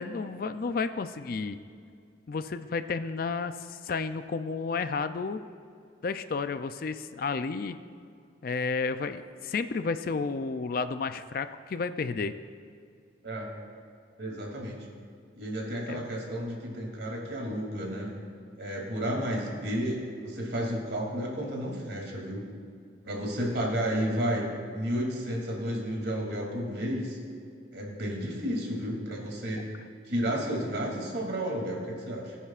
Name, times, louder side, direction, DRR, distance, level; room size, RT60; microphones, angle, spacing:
voice 1, 0.0-1.6 2.3-5.4 6.0-7.8 8.4-12.3 15.9-16.0 29.5-29.6, left 4 dB, 50° left, 11 dB, 0.4 m, -32 dB
voice 2, 13.2-13.5 14.2-14.9 15.3-18.1 18.6-22.4 23.0-24.5 24.7-27.2 27.7-29.7 30.1-32.4, equal, 65° right, -1 dB, 2.7 m, -32 dB
20.5 x 10.0 x 2.5 m, 2.3 s
head